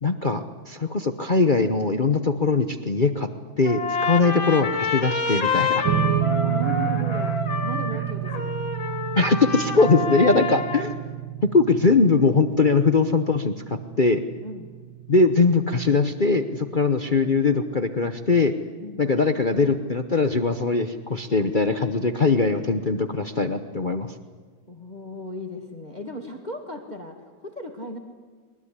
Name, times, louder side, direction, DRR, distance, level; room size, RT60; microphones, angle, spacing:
voice 1, 0.0-3.3 3.6-5.9 9.1-10.9 11.4-14.2 15.1-18.5 19.0-24.1, left 4 dB, 40° left, 8 dB, 0.7 m, -21 dB
Trumpet, 3.6-11.0, left 4 dB, 70° left, 3.1 m, -28 dB
sound 1, 5.8-18.4, right 12 dB, 70° right, 1.7 m, -30 dB
voice 2, 6.4-8.5 10.0-10.3 14.4-14.7 18.8-19.1 24.7-28.0, equal, 20° left, 4 dB, 2.0 m, -36 dB
22.0 x 21.0 x 9.9 m, 1.5 s
omnidirectional pair, 2.2 m